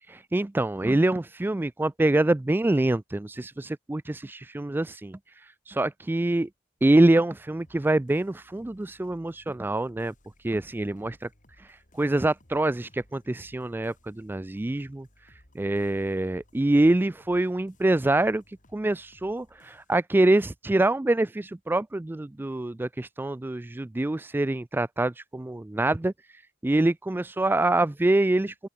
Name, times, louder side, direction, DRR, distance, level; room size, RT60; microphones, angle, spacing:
voice 1, 0.1-6.5 6.8-10.1 10.4-11.3 11.6-15.1 15.6-28.7, right 2 dB, 10° right, 0.3 m, -25 dB
sound 1, 7.5-19.9, left 1 dB, 40° left, 6.4 m, -60 dB
open air
head